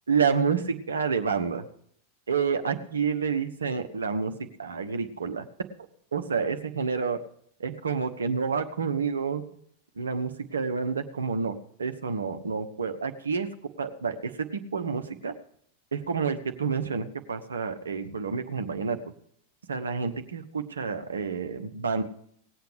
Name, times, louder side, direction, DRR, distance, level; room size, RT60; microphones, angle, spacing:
voice 1, 0.1-1.7 2.3-5.5 6.1-7.2 7.6-9.4 10.0-13.5 13.8-15.3 15.9-19.0 19.7-22.0, right 5 dB, 70° right, 8 dB, 1.1 m, -29 dB
18.5 x 8.1 x 5.1 m, 0.68 s
figure-of-eight pair, 90°, 0 cm